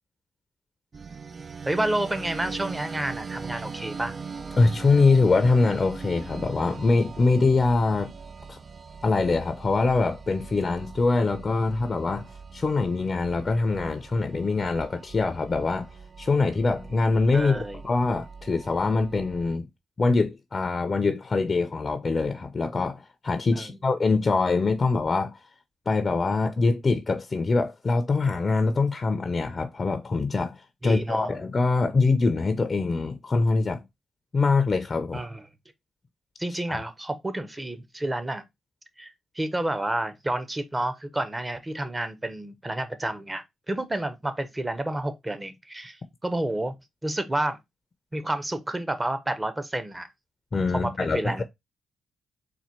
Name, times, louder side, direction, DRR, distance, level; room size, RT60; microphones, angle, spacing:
sound 1, 0.9-19.6, right 5 dB, 45° right, 0.3 m, -41 dB
voice 1, 1.6-4.2 17.3-17.8 23.5-23.7 30.8-31.4 35.1-35.4 36.4-38.4 39.0-46.7 47.0-47.6 48.1-50.1 50.7-51.4, right 1 dB, 20° right, 0.8 m, -30 dB
voice 2, 4.6-8.1 8.5-8.6 9.0-12.3 12.5-15.9 16.2-19.7 20.0-25.4 25.9-33.8 34.3-35.2 36.7-36.8 50.5-51.2, left 3 dB, 40° left, 0.5 m, -24 dB
4.2 x 2.3 x 4.4 m
supercardioid pair, 60°, 0 cm